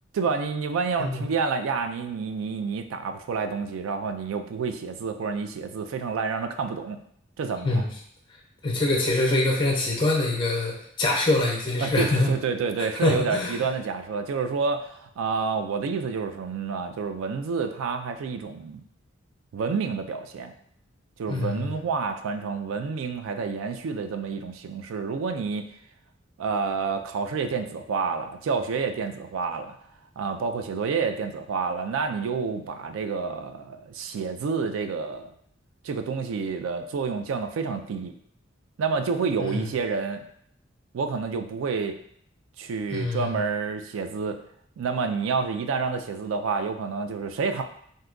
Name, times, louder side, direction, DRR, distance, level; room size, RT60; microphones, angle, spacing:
voice 1, 0.1-7.0 7.4-7.9 11.8-18.8 19.5-20.5 21.2-25.7 26.4-29.8 30.2-35.3 35.8-38.1 38.8-40.2 40.9-42.0 42.6-44.4 44.8-47.6, right 5 dB, 85° right, 7 dB, 0.3 m, -29 dB
voice 2, 8.6-12.3 13.0-13.6 21.3-21.7 39.4-39.7 42.9-43.4, left 2 dB, 25° left, -1 dB, 0.5 m, -24 dB
2.7 x 2.2 x 3.7 m, 0.67 s
head